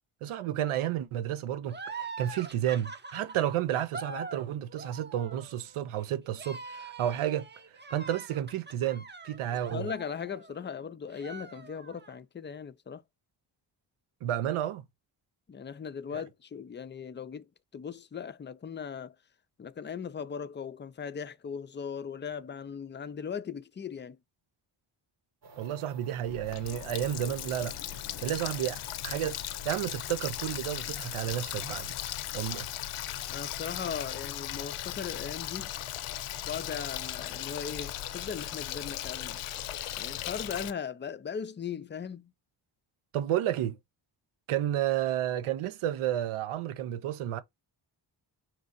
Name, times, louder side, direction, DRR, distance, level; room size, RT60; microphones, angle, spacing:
voice 1, 0.2-7.5 7.9-9.9 14.2-14.8 16.1-16.2 25.6-27.8 28.2-29.4 29.6-31.9 32.3-32.7 43.1-43.8 44.5-47.4, right 11 dB, 85° right, 0.7 m, -31 dB
sound 1, 1.7-10.8 11.1-12.2, right 3 dB, 20° right, 0.8 m, -44 dB
voice 2, 9.7-13.0 15.5-19.2 19.6-24.2 33.3-35.7 36.5-39.4 40.0-42.3, left 7 dB, 25° left, 0.4 m, -38 dB
sound 2, 25.4-40.7, right 3 dB, 55° right, 1.3 m, -53 dB
Water tap faucet, 26.3-40.7, left 14 dB, 80° left, 0.6 m, -37 dB
4.5 x 2.5 x 3.9 m
cardioid pair, 55°, 49 cm